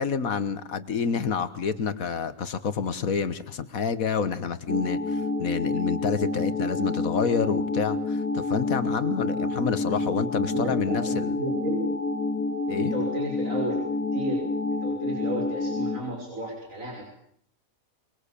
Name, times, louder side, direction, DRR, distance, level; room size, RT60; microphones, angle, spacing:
voice 1, 0.0-11.4 12.7-12.9, left 6 dB, 70° left, 13 dB, 1.7 m, -28 dB
sound 1, 4.7-16.0, left 3 dB, 10° left, 2.5 m, -28 dB
voice 2, 10.5-11.9 12.8-13.8 14.1-14.4 14.8-17.0, right 1 dB, 65° right, -1 dB, 6.3 m, -33 dB
23.5 x 22.5 x 8.4 m, 0.66 s
omnidirectional pair, 1.5 m